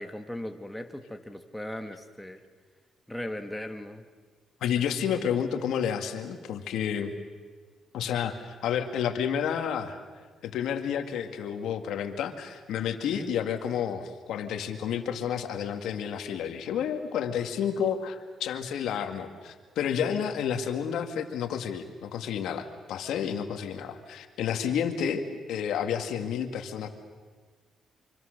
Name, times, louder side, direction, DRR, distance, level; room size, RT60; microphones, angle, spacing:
voice 1, 0.0-2.4 3.1-4.0 5.1-5.2 13.1-13.3 20.0-20.3, left 1 dB, 5° left, 6 dB, 1.6 m, -38 dB
voice 2, 4.6-7.1 7.9-10.0 10.4-25.2 25.5-26.9, left 8 dB, 80° left, 7 dB, 2.0 m, -30 dB
25.5 x 25.0 x 6.6 m, 1.5 s
cardioid pair, 90°, 0 cm